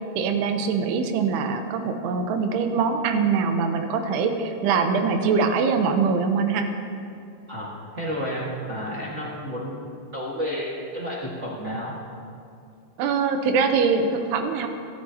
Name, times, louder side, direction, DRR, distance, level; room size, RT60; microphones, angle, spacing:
voice 1, 0.2-6.7 13.0-14.7, right 5 dB, 90° right, 6 dB, 3.0 m, -23 dB
voice 2, 7.5-12.0, equal, 45° right, -6 dB, 0.9 m, -31 dB
24.5 x 12.0 x 2.9 m, 2.5 s
omnidirectional pair, 4.6 m